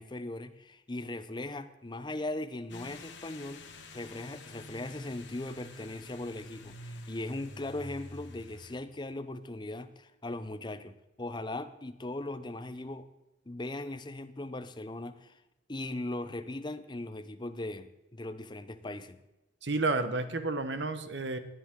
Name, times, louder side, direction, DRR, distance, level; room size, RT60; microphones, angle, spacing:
voice 1, 0.0-3.6 3.9-13.1 13.5-15.4 15.7-19.2, left 2 dB, 25° left, 11 dB, 0.7 m, -39 dB
sound 1, 2.7-8.8, left 2 dB, 80° left, 1.6 m, -48 dB
voice 2, 19.6-21.4, right 3 dB, 70° right, 10 dB, 1.1 m, -31 dB
18.5 x 10.5 x 3.7 m, 0.98 s
head